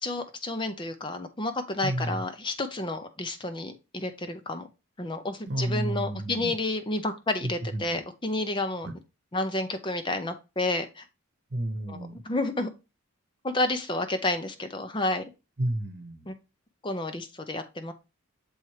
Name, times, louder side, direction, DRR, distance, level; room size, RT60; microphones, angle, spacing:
voice 1, 0.0-4.7 5.0-8.9 9.3-11.1 11.9-12.0 12.2-12.7 13.4-15.2 16.3-16.4 16.8-17.9, left 2 dB, 20° left, 8 dB, 0.6 m, -30 dB
voice 2, 1.8-2.2 5.5-6.5 7.7-7.8 8.8-8.9 11.5-12.2 15.6-16.3, right 1 dB, 50° right, 8 dB, 1.0 m, -31 dB
7.1 x 4.3 x 3.1 m, 0.28 s
head